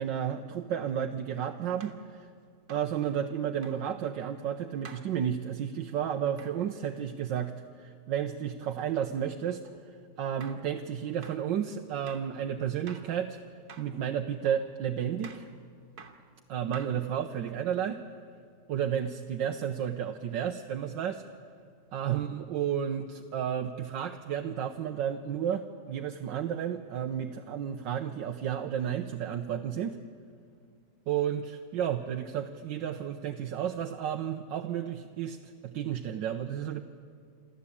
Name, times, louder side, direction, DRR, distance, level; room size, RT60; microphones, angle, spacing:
voice 1, 0.0-2.3 2.7-9.6 10.2-13.4 13.8-15.4 16.5-18.0 18.7-21.2 21.9-30.0 31.1-36.8, right 9 dB, 85° right, 4 dB, 1.5 m, -32 dB
sound 1, 0.7-0.9 1.8-2.0 2.7-2.9 3.6-3.8 4.8-5.1 6.4-6.6 9.6-9.8 10.4-10.7 11.2-11.4 12.1-12.3 12.9-13.1 13.7-14.0 14.4-14.7 15.2-15.5 16.0-16.2 16.7-17.2, right 5 dB, 60° right, 1.8 m, -49 dB
28.0 x 12.5 x 8.6 m, 2.3 s
omnidirectional pair, 1.9 m